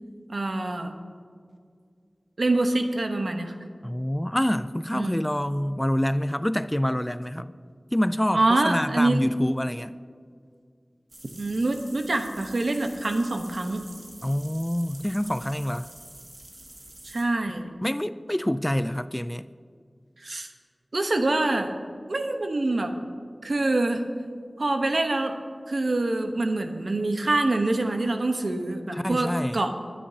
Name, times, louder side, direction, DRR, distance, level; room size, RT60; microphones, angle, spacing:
voice 1, 0.3-0.9 2.4-3.5 4.9-5.2 8.3-9.2 11.4-13.8 17.0-17.7 20.2-20.5 20.9-21.7 22.1-22.9 23.4-24.0 24.6-25.4 25.7-29.7, right 2 dB, 75° right, 5 dB, 1.1 m, -25 dB
voice 2, 3.8-7.5 7.9-10.0 14.2-15.9 17.8-19.4 28.9-29.7, equal, 10° left, 13 dB, 0.3 m, -26 dB
sound 1, 11.1-17.2, right 1 dB, 50° right, 2.1 m, -47 dB
23.0 x 10.0 x 2.9 m, 2.2 s
wide cardioid pair, 50°, 0 cm